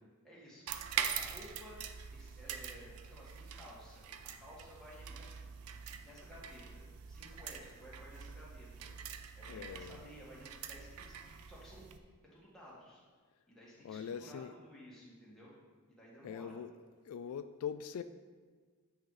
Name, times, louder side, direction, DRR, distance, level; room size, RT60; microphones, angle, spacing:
voice 1, 0.2-1.8 2.1-5.5 5.9-8.9 9.3-11.9 12.3-13.0 13.5-15.5 15.9-16.5, equal, ahead, -7 dB, 1.9 m, -55 dB
sound 1, 0.7-12.0, right 8 dB, 80° right, 0.5 m, -44 dB
voice 2, 9.5-10.0 13.8-14.5 16.2-16.7 17.1-18.0, left 7 dB, 75° left, 12 dB, 0.3 m, -42 dB
8.9 x 4.1 x 4.8 m, 1.5 s
head